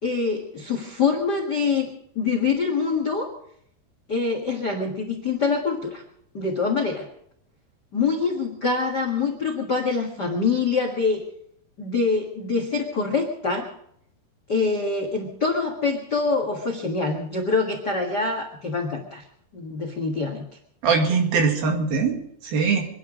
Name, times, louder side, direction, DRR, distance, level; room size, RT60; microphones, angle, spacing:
voice 1, 0.0-1.9 2.1-3.3 4.1-6.0 6.3-7.1 7.9-11.2 11.8-13.7 14.5-19.2 19.5-20.5, left 4 dB, 60° left, 4 dB, 1.1 m, -25 dB
voice 2, 20.8-22.9, right 5 dB, 60° right, 3 dB, 3.6 m, -22 dB
25.0 x 11.0 x 5.0 m, 0.70 s
omnidirectional pair, 4.9 m